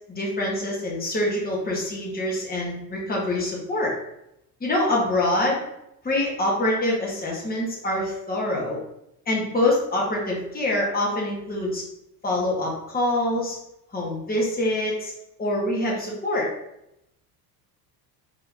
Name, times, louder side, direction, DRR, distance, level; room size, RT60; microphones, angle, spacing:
voice 1, 0.1-3.9 4.6-5.6 6.0-8.8 9.3-11.8 12.2-13.6 13.9-15.1 15.4-16.5, left 1 dB, 20° left, -3 dB, 1.6 m, -25 dB
4.2 x 3.4 x 3.6 m, 0.83 s
hypercardioid pair, 75°, 49 cm